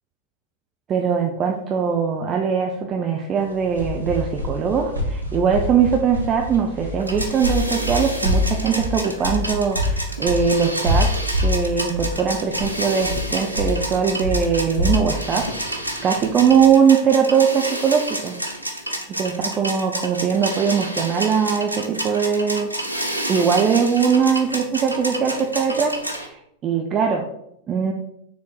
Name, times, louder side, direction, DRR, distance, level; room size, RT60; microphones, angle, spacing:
voice 1, 0.9-11.1 11.4-18.4 19.1-22.7 23.3-27.3 27.7-27.9, right 7 dB, 30° right, 2 dB, 0.6 m, -21 dB
sound 1, 3.4-16.7, left 1 dB, 85° right, 1.1 m, -26 dB
sound 2, 7.0-26.3, right 1 dB, 90° left, 0.9 m, -29 dB
6.2 x 3.7 x 4.4 m, 0.77 s
figure-of-eight pair, 90°, 0 cm